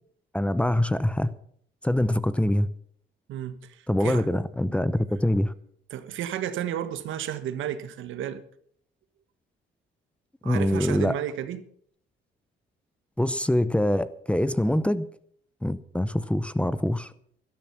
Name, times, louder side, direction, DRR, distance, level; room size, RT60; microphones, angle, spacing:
voice 1, 0.3-1.3 1.8-2.7 3.9-5.5 10.4-11.2 13.2-15.1 15.6-17.1, left 1 dB, 5° left, 0.7 m, -24 dB
voice 2, 3.3-4.4 5.9-8.4 10.4-11.7, right 10 dB, 80° right, 1.3 m, -32 dB
12.5 x 12.5 x 5.9 m
cardioid pair, 90°, 20 cm